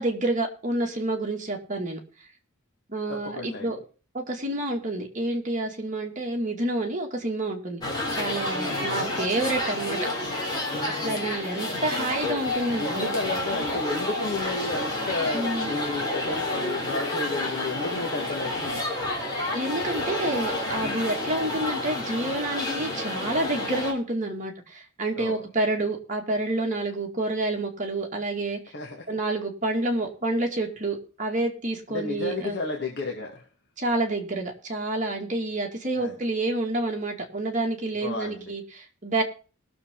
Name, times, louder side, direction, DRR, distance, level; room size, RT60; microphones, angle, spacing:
voice 1, 0.0-2.0 2.9-3.8 4.1-7.8 8.1-10.0 10.8-13.1 15.3-15.7 19.5-28.6 29.1-32.6 33.8-39.2, right 2 dB, 35° right, 1 dB, 2.3 m, -28 dB
voice 2, 3.1-3.7 8.5-9.1 10.7-11.2 12.8-18.9 25.1-25.4 28.7-29.2 31.9-33.5 36.0-36.1 38.0-38.5, left 3 dB, 50° left, 0 dB, 1.7 m, -32 dB
sound 1, 7.8-23.9, left 1 dB, 20° left, 3.1 m, -30 dB
20.5 x 6.8 x 3.8 m, 0.38 s
head